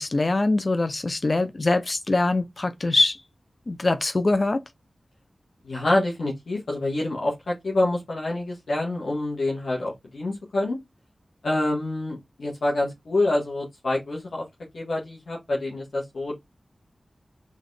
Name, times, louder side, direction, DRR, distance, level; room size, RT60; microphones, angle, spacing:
voice 1, 0.0-3.2 3.7-4.6, left 2 dB, 55° left, 0.6 m, -23 dB
voice 2, 5.6-10.8 11.4-14.5 14.7-16.4, left 2 dB, 85° left, 1.7 m, -26 dB
4.1 x 3.8 x 3.3 m
cardioid pair, 40°, 0 cm